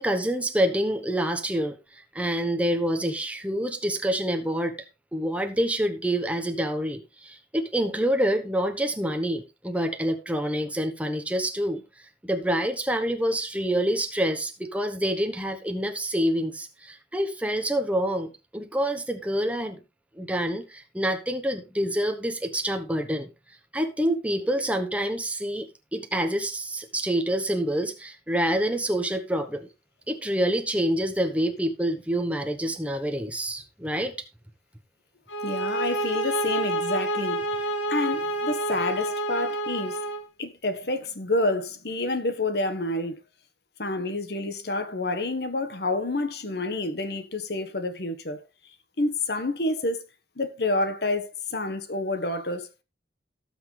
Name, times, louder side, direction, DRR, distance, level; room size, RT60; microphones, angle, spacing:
voice 1, 0.0-1.8 2.1-4.8 5.1-11.8 12.2-19.8 20.2-23.3 23.7-25.7 25.9-29.7 30.1-34.2, right 1 dB, 5° right, 1.0 m, -27 dB
sound 1, 35.3-40.3, right 2 dB, 85° left, 1.8 m, -28 dB
voice 2, 35.4-40.0 40.4-43.2 43.8-48.4 49.0-50.0 50.4-52.8, left 2 dB, 60° left, 1.3 m, -28 dB
18.0 x 6.0 x 3.3 m
head